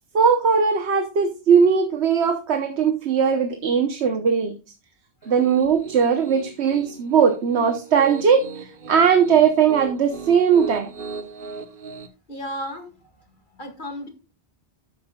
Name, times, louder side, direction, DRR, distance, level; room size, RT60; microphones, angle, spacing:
voice 1, 0.1-4.6 5.3-10.9, right 6 dB, 85° right, 8 dB, 1.3 m, -19 dB
Piano, 5.2-12.1, right 5 dB, 55° right, 1.2 m, -37 dB
voice 2, 12.3-14.1, equal, 50° left, 4 dB, 2.3 m, -35 dB
12.5 x 8.4 x 2.3 m, 0.31 s
omnidirectional pair, 1.1 m